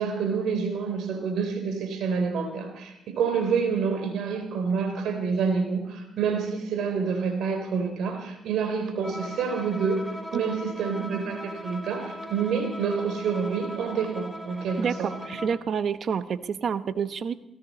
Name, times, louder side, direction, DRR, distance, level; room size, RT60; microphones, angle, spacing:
voice 1, 0.0-10.1 10.3-15.2, right 5 dB, 80° right, 6 dB, 3.5 m, -28 dB
Bowed string instrument, 9.0-15.7, equal, 10° right, 3.6 m, -40 dB
voice 2, 14.8-17.3, right 7 dB, 55° right, 12 dB, 1.0 m, -28 dB
20.5 x 16.5 x 4.2 m, 0.93 s
cardioid pair, 90°, 0 cm